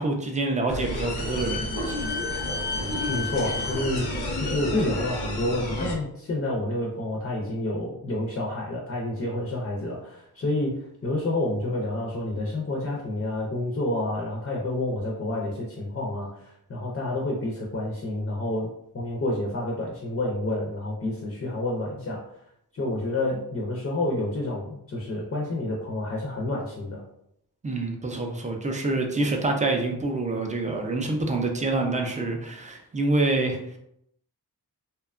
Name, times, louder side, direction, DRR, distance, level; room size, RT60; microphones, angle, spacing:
voice 1, 0.0-1.6 1.8-2.0 27.6-33.8, right 2 dB, 20° right, 2 dB, 0.3 m, -26 dB
sound 1, 0.7-5.9, left 1 dB, 85° left, 0.7 m, -30 dB
voice 2, 3.1-18.7 18.9-22.2 22.7-27.0, left 1 dB, 40° left, -2 dB, 0.5 m, -29 dB
2.7 x 2.2 x 2.4 m, 0.74 s
wide cardioid pair, 145°, 38 cm